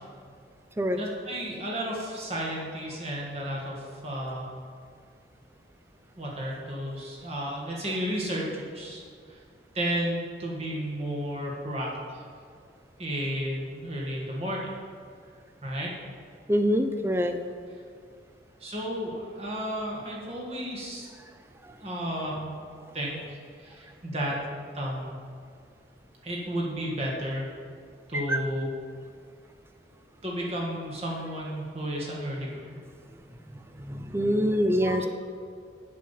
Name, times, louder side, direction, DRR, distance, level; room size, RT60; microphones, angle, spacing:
voice 1, 0.9-4.5 6.2-9.0 9.7-12.2 13.0-14.7 15.6-15.9 18.6-21.1 21.8-22.6 22.9-24.4 24.7-25.2 26.2-27.5 28.1-28.7 30.2-32.8 34.8-34.9, equal, 35° right, -4 dB, 1.7 m, -32 dB
voice 2, 16.5-17.3 28.1-28.4 33.8-35.1, equal, 15° right, 6 dB, 0.4 m, -25 dB
7.5 x 5.6 x 7.3 m, 2.2 s
head